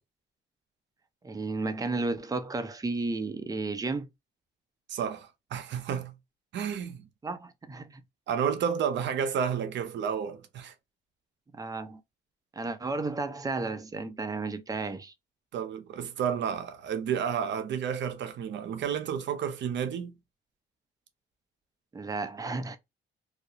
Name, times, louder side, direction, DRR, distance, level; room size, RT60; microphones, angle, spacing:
voice 1, 1.2-4.1 7.2-8.0 11.5-12.0 12.5-15.1 21.9-22.8, right 3 dB, 20° right, 0.5 m, -33 dB
voice 2, 4.9-6.1 6.5-7.1 8.3-10.7 15.5-20.1, right 8 dB, 65° right, 0.6 m, -31 dB
2.3 x 2.0 x 2.7 m
cardioid pair, 90°, 20 cm